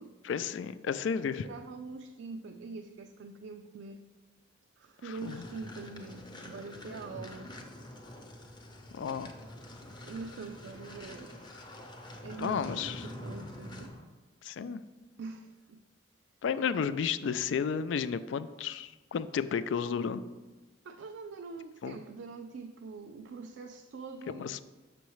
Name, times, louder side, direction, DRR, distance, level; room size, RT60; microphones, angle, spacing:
voice 1, 0.2-1.5 5.0-5.4 8.9-9.3 12.4-13.1 14.4-14.8 16.4-20.2 21.8-22.0 24.3-24.6, left 6 dB, 80° left, 13 dB, 0.3 m, -32 dB
voice 2, 1.4-4.0 4.8-7.5 10.0-11.5 12.2-13.9 15.2-15.8 20.8-24.5, right 4 dB, 70° right, 6 dB, 0.4 m, -44 dB
sound 1, 5.1-14.1, left 1 dB, 25° left, 0.7 m, -46 dB
6.8 x 6.3 x 3.1 m, 1.2 s
head